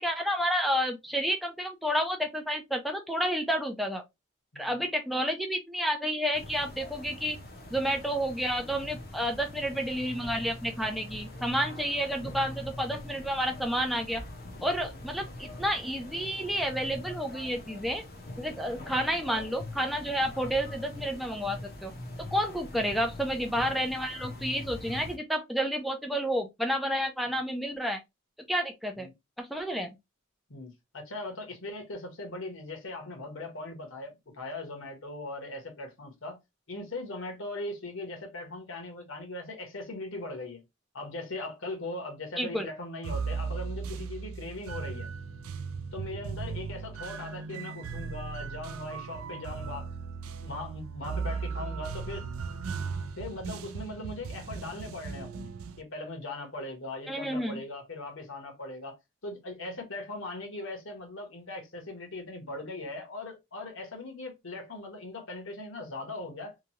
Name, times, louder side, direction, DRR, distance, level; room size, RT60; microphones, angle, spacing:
voice 1, 0.0-4.0 4.6-7.4 7.7-14.2 14.6-18.0 18.4-21.9 22.3-28.0 28.5-29.1 29.4-29.9 42.4-42.7 57.1-57.6, equal, ahead, 0.4 m, -30 dB
voice 2, 4.5-4.8 11.8-12.0 14.9-15.1 18.6-18.9 22.7-22.8 29.0-29.1 30.5-36.4 36.7-40.6 40.9-45.1 45.9-49.9 50.4-52.2 53.2-55.5 55.8-59.0 59.2-66.6, left 2 dB, 70° left, 1.0 m, -40 dB
sound 1, 6.3-25.2, left 1 dB, 45° left, 0.6 m, -43 dB
sound 2, 43.0-55.8, right 5 dB, 85° right, 0.4 m, -37 dB
2.9 x 2.3 x 2.7 m
head